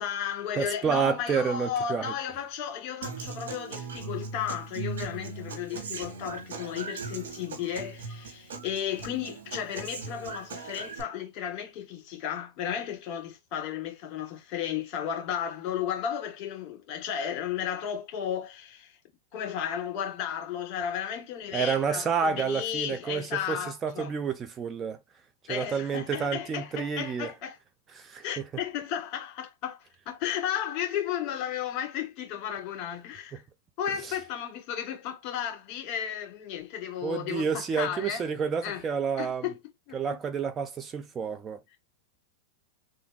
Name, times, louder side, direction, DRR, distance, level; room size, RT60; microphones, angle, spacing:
voice 1, 0.0-18.9 19.3-24.1 25.5-27.6 28.2-33.4 33.8-38.2 38.6-38.8 39.2-39.5 39.9-40.0, left 9 dB, 40° left, 2.2 m, -34 dB
voice 2, 0.6-2.1 21.5-25.0 25.5-27.3 27.9-28.5 33.9-34.2 37.0-39.5 39.9-41.6, right 6 dB, 25° right, 0.6 m, -29 dB
Human voice / Acoustic guitar, 3.0-11.0, right 4 dB, 75° right, 1.3 m, -39 dB
3.5 x 2.6 x 3.6 m
hypercardioid pair, 125°, 0 cm